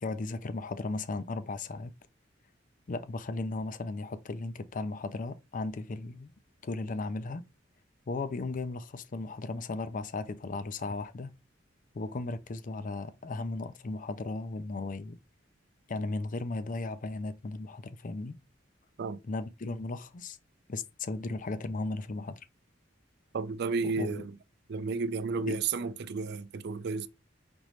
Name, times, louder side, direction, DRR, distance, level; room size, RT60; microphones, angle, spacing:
voice 1, 0.0-1.9 2.9-6.3 6.6-7.4 8.1-11.3 11.9-15.2 15.9-18.4 19.2-20.4 20.7-22.4 23.8-24.2 25.4-25.6, left 3 dB, 45° left, 0.5 m, -36 dB
voice 2, 23.3-24.3 24.7-27.1, right 4 dB, 60° right, 0.4 m, -32 dB
5.2 x 3.0 x 3.1 m
head